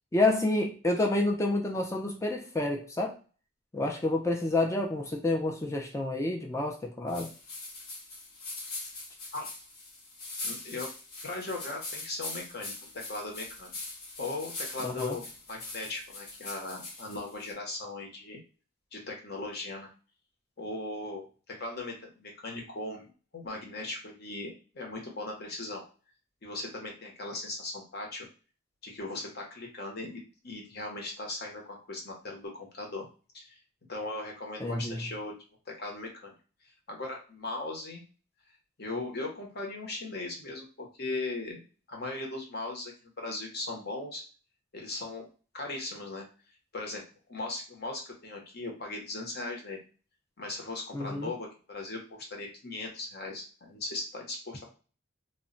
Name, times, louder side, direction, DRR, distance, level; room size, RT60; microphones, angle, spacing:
voice 1, 0.1-3.2 3.7-7.3 14.8-15.2 34.6-35.0 50.9-51.3, left 2 dB, 15° left, 1 dB, 0.4 m, -29 dB
sound 1, 7.1-17.5, left 2 dB, 85° left, 0.9 m, -42 dB
voice 2, 10.4-10.9 11.2-13.7 14.2-18.4 18.9-19.9 20.6-25.8 26.4-28.3 28.8-33.1 33.3-33.6 33.9-35.3 35.7-36.3 36.9-38.0 38.8-41.6 41.9-44.2 44.7-45.3 45.5-46.3 46.7-47.0 47.3-49.8 50.4-54.7, left 2 dB, 45° left, 0 dB, 0.8 m, -38 dB
2.2 x 2.1 x 3.8 m, 0.36 s
head